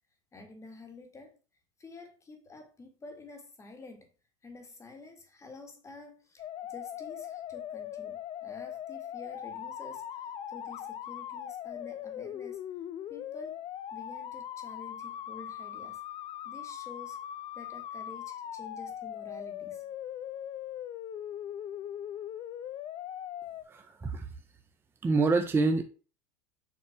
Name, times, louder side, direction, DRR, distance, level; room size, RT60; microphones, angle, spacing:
voice 1, 0.3-1.4 1.8-4.1 4.4-12.6 13.1-13.6 13.9-16.0 16.4-17.2 17.5-19.9, left 3 dB, 15° left, 1.7 m, -49 dB
sound 1, 6.4-23.6, left 10 dB, 30° left, 0.5 m, -40 dB
voice 2, 23.7-24.3 25.0-25.8, right 3 dB, 15° right, 0.7 m, -26 dB
7.2 x 3.0 x 5.7 m
supercardioid pair, 130°, 17 cm